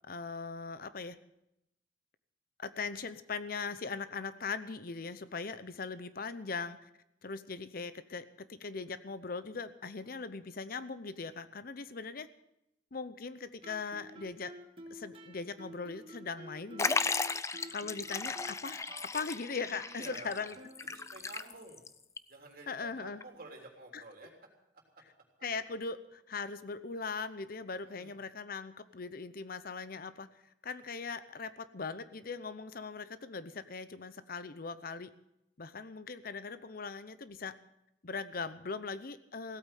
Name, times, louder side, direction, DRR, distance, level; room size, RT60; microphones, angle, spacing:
voice 1, 0.1-1.2 2.6-6.8 7.2-12.3 12.9-14.5 14.9-17.0 17.7-18.9 19.1-20.6 22.7-23.2 23.9-24.0 25.4-30.3 30.6-35.1 35.6-37.6 38.0-39.6, left 4 dB, 50° left, 13 dB, 0.7 m, -40 dB
Guitar, 13.6-21.3, right 1 dB, 30° right, 1.7 m, -52 dB
Liquid, 16.8-21.9 22.2-22.3 23.2-23.3, left 4 dB, 15° left, 0.5 m, -35 dB
voice 2, 19.7-20.6 20.9-21.8 22.3-24.3 27.9-28.2, right 2 dB, 55° right, 1 dB, 3.4 m, -50 dB
16.5 x 8.8 x 9.1 m, 0.83 s
head